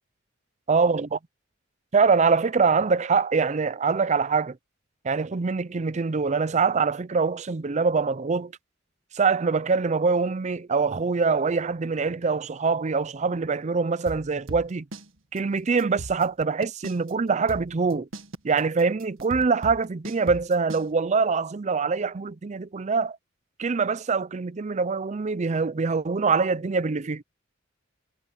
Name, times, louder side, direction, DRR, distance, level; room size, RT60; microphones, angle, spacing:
voice 1, 0.7-1.2 1.9-4.6 5.0-8.5 9.1-14.8 15.3-18.1 18.4-23.2 23.6-27.2, right 4 dB, 35° right, 0.5 m, -24 dB
sound 1, 14.1-15.1 15.4-15.5 15.8-17.1 17.5-20.9, right 1 dB, 85° right, 1.7 m, -37 dB
head